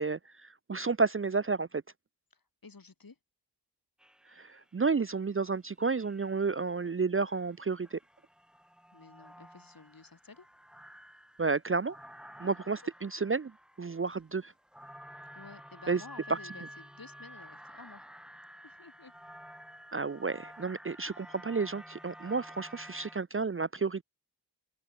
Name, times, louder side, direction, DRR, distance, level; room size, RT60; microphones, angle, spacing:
voice 1, 0.0-1.8 4.3-8.0 11.4-12.0 12.4-13.5 13.8-14.5 15.9-16.0 19.9-24.0, right 4 dB, 30° right, 0.5 m, -31 dB
voice 2, 2.3-3.2 8.9-10.5 12.8-13.3 15.3-18.1 18.6-19.1 20.6-21.0, left 4 dB, 55° left, 2.6 m, -52 dB
sound 1, 4.0-4.8 5.8-6.5 7.3-23.2, equal, ahead, 6.4 m, -51 dB
open air
wide cardioid pair, 65°, 41 cm